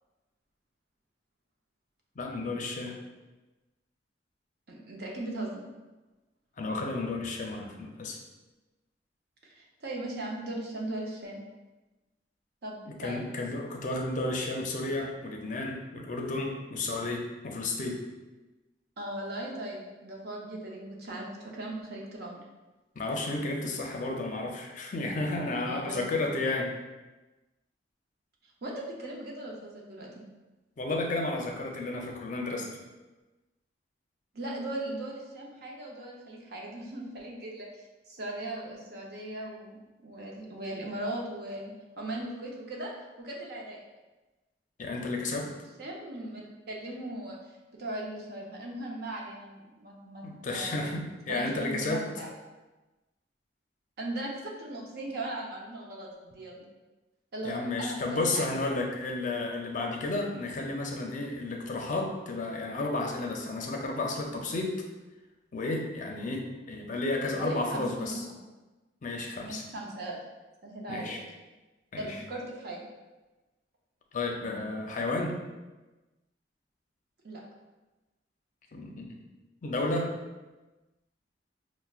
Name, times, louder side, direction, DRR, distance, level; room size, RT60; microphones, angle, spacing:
voice 1, 2.2-3.0 6.6-8.2 12.9-18.0 23.0-26.7 30.8-32.7 44.8-45.5 50.2-52.1 57.4-64.8 65.5-68.2 69.0-69.7 70.9-71.2 71.9-72.2 74.1-75.4 78.7-79.1 79.6-80.1, left 2 dB, 45° left, 1 dB, 0.5 m, -32 dB
voice 2, 4.7-5.7 9.4-11.4 12.6-13.3 19.0-22.4 25.7-26.0 28.6-30.2 34.3-39.8 40.0-41.7 42.0-42.9 43.2-43.8 45.8-47.4 47.8-50.9 51.3-52.3 54.0-56.7 57.3-57.5 57.8-58.5 67.4-68.3 69.4-70.2 70.6-71.1 72.0-72.9 77.2-77.4, right 1 dB, 60° right, -2 dB, 0.7 m, -38 dB
5.5 x 2.1 x 2.4 m, 1.1 s
head